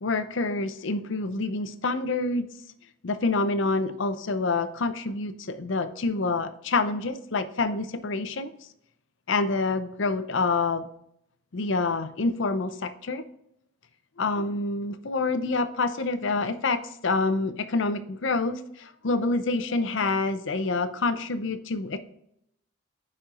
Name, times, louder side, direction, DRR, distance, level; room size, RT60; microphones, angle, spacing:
voice 1, 0.0-2.5 3.0-8.5 9.3-10.9 11.5-13.3 14.2-22.0, left 3 dB, 60° left, 11 dB, 0.6 m, -27 dB
10.0 x 4.4 x 2.5 m, 0.74 s
head